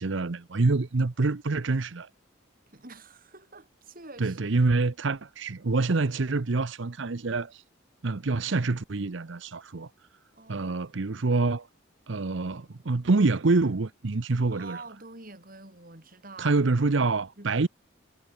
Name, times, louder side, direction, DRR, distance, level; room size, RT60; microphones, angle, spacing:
voice 1, 0.0-2.1 4.2-7.6 8.0-9.9 10.5-11.7 12.1-14.8 16.4-17.7, right 3 dB, 60° right, 0.7 m, -26 dB
voice 2, 2.7-4.4 10.3-10.8 14.2-16.7 17.4-17.7, right 3 dB, 40° right, 4.1 m, -47 dB
head